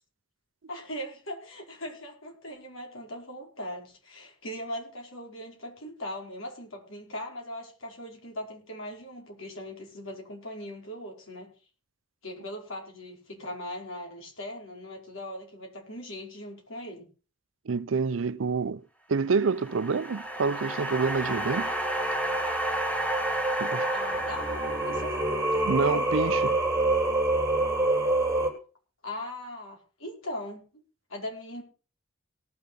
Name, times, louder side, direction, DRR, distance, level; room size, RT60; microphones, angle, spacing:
voice 1, 0.7-11.5 12.2-17.1 23.9-26.1 29.0-30.6 31.1-31.6, left 1 dB, 85° left, 5.1 m, -39 dB
voice 2, 17.7-18.8 19.1-21.7 23.6-23.9 25.7-26.6, right 5 dB, 75° right, 0.5 m, -27 dB
sound 1, 19.3-25.7, right 1 dB, 5° left, 1.6 m, -33 dB
Singing, 20.3-28.5, right 2 dB, 15° right, 3.4 m, -28 dB
18.5 x 6.9 x 5.4 m
head